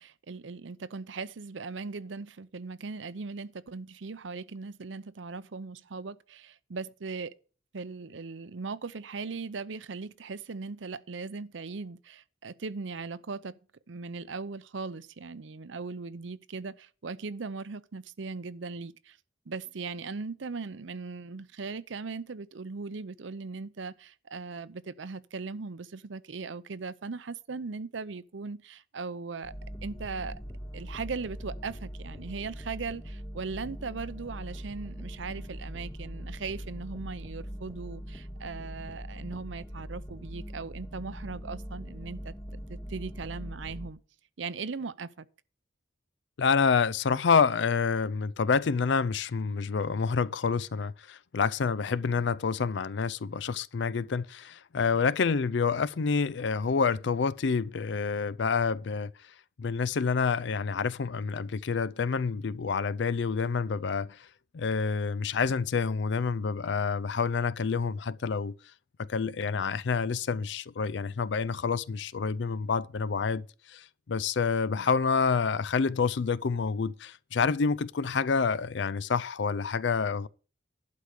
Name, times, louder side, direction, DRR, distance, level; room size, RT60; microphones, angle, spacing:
voice 1, 0.0-7.3 7.7-13.6 13.9-19.2 19.5-29.5 29.8-30.4 30.7-44.0 44.4-45.3, right 4 dB, 75° right, 0.6 m, -39 dB
sound 1, 29.4-43.9, equal, 15° left, 0.9 m, -41 dB
voice 2, 46.4-59.1 59.6-64.2 64.5-68.6 69.0-80.3, left 5 dB, 65° left, 0.4 m, -28 dB
11.5 x 4.9 x 8.2 m
head